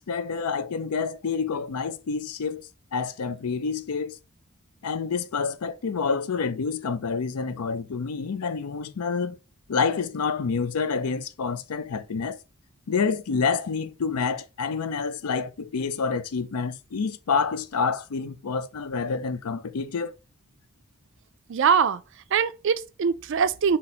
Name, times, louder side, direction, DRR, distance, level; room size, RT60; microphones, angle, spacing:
voice 1, 0.0-4.2 4.8-9.4 9.7-12.4 12.9-20.2, left 5 dB, 80° left, 0.5 m, -28 dB
voice 2, 21.5-22.0 22.3-23.8, right 6 dB, 55° right, 0.4 m, -22 dB
4.2 x 2.8 x 4.1 m
head